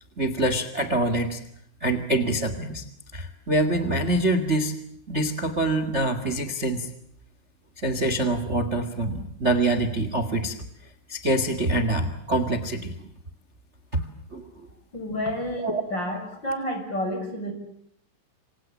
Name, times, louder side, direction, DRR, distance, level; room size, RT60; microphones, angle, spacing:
voice 1, 0.2-1.4 1.8-2.8 3.1-4.8 5.1-6.9 7.8-10.6 11.1-12.9 13.9-14.0 14.3-14.5 15.6-15.8, right 1 dB, 75° right, 12 dB, 0.6 m, -25 dB
voice 2, 14.9-17.5, equal, 25° left, 5 dB, 6.9 m, -30 dB
27.5 x 26.5 x 7.4 m, 0.70 s
omnidirectional pair, 5.4 m